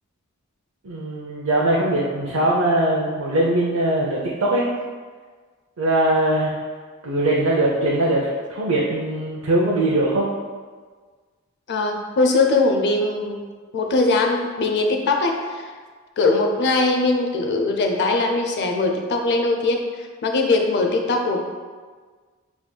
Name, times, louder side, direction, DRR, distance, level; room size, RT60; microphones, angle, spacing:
voice 1, 0.8-4.7 5.8-6.5 7.0-10.3, right 1 dB, 70° right, -4 dB, 0.6 m, -21 dB
voice 2, 11.7-15.7 16.2-21.4, left 3 dB, 55° left, 3 dB, 0.5 m, -21 dB
6.2 x 3.5 x 2.2 m, 1.5 s
head